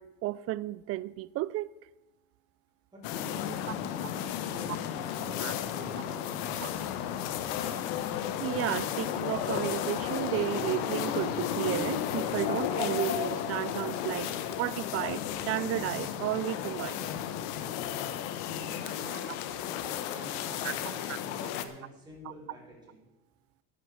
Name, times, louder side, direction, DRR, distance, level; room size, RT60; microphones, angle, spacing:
voice 1, 0.0-1.7 5.4-5.5 6.6-6.7 8.4-14.3 14.6-17.1 20.6-20.7 21.1-21.2, right 16 dB, 40° right, 0.4 m, -33 dB
voice 2, 2.9-6.7 18.5-19.3 20.0-23.0, equal, 10° right, 5.5 m, -48 dB
sound 1, 3.0-21.6, left 10 dB, 70° left, 1.2 m, -33 dB
12.5 x 8.8 x 6.3 m
cardioid pair, 135°, 39 cm